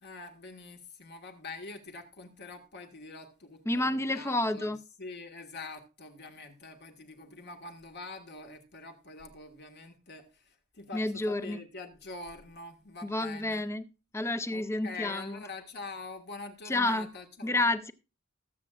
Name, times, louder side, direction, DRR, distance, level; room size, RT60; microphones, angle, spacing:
voice 1, 0.0-13.7 14.5-17.7, left 3 dB, 50° left, 1.6 m, -45 dB
voice 2, 3.7-4.8 10.9-11.6 13.0-13.9 14.1-15.4 16.7-17.1 17.4-17.9, left 2 dB, 10° left, 0.5 m, -30 dB
20.0 x 7.5 x 2.4 m
head